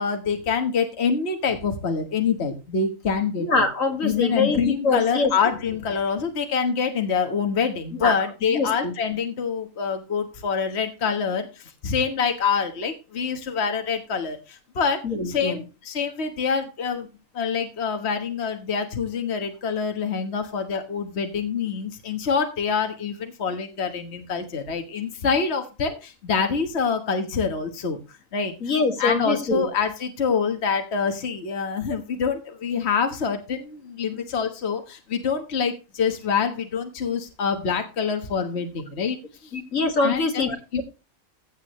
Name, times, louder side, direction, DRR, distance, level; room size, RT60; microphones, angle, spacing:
voice 1, 0.0-3.6 4.0-17.1 17.3-28.5 29.0-39.2 39.4-39.5 40.0-40.4 40.7-40.8, left 6 dB, 55° left, 5 dB, 1.6 m, -26 dB
voice 2, 3.4-5.3 8.0-8.1 8.5-8.9 15.0-15.6 28.6-29.7 39.5-40.6, left 3 dB, 80° left, 5 dB, 2.4 m, -24 dB
15.5 x 8.5 x 3.1 m, 0.30 s
omnidirectional pair, 1.4 m